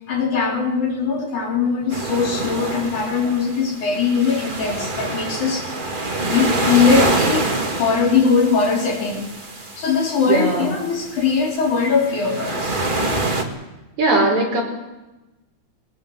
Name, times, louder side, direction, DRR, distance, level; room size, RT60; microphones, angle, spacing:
voice 1, 0.1-5.7 6.2-9.3 9.8-12.8, left 5 dB, 85° left, 0 dB, 5.2 m, -20 dB
sound 1, 1.9-13.4, right 2 dB, 20° right, 1.6 m, -26 dB
voice 2, 10.3-10.7 14.0-14.6, right 3 dB, 75° right, 1 dB, 6.0 m, -18 dB
20.5 x 20.0 x 8.0 m, 1.0 s
omnidirectional pair, 3.4 m